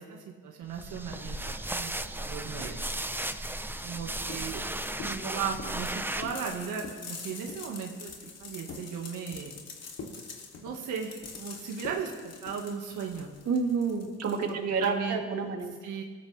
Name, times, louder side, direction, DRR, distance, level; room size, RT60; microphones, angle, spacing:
voice 1, 0.0-2.8 3.8-4.6 5.3-9.5 10.6-13.3 14.5-15.2 15.8-16.0, right 6 dB, 85° right, 0 dB, 1.9 m, -37 dB
sound 1, 0.7-6.6, right 1 dB, 5° right, 0.8 m, -35 dB
sound 2, 4.3-4.6 5.0-5.2 5.6-5.9 6.2-6.5 6.7-7.1 7.5-7.7 8.1-8.9 9.3-9.7 10.0-10.2 10.5-11.4 11.8-12.1 12.5-12.7 13.1-13.4, left 4 dB, 75° left, 3.3 m, -44 dB
voice 2, 5.0-5.4 5.7-5.8 13.5-15.7, right 5 dB, 55° right, 2 dB, 2.4 m, -30 dB
sound 3, 5.8-15.2, left 5 dB, 55° left, 2.9 m, -46 dB
25.0 x 14.5 x 3.5 m, 1.4 s
cardioid pair, 90°, 30 cm